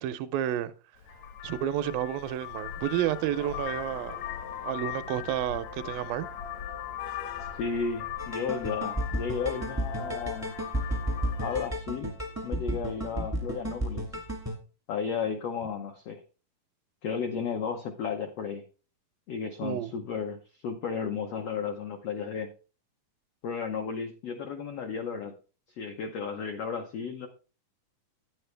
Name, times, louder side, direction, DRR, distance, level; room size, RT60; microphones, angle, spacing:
voice 1, 0.0-0.7 1.4-4.2 4.6-6.3 19.6-19.9, right 11 dB, 80° right, 2.3 m, -30 dB
Vehicle horn car horn honking, 1.0-11.7, left 9 dB, 65° left, 1.9 m, -39 dB
voice 2, 7.6-10.5 11.4-12.1 12.4-14.0 14.9-16.2 17.0-18.6 19.3-20.4 20.6-22.5 23.4-25.3 25.8-27.3, left 6 dB, 85° left, 1.3 m, -33 dB
sound 1, 8.2-14.6, equal, 15° right, 0.6 m, -33 dB
9.6 x 9.4 x 3.3 m
omnidirectional pair, 4.1 m